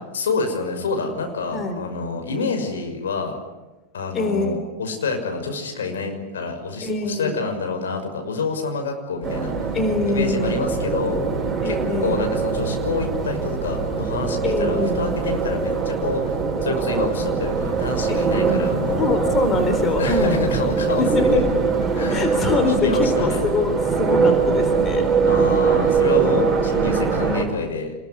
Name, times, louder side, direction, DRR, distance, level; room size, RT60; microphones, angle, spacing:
voice 1, 0.1-3.4 3.9-9.5 10.1-11.3 11.6-16.2 16.6-19.1 20.0-21.5 21.9-22.4 22.8-23.4 25.3-28.0, left 4 dB, 65° left, 4 dB, 6.0 m, -27 dB
voice 2, 1.5-1.9 4.1-4.5 6.8-7.3 9.7-10.6 11.6-12.2 14.4-15.0 18.1-18.6 19.0-20.5 21.0-21.4 22.1-25.1, left 3 dB, 25° left, 6 dB, 4.0 m, -24 dB
sound 1, 9.2-27.4, right 5 dB, 10° right, 7.7 m, -22 dB
27.0 x 22.0 x 10.0 m, 1.1 s
figure-of-eight pair, 90°, 0 cm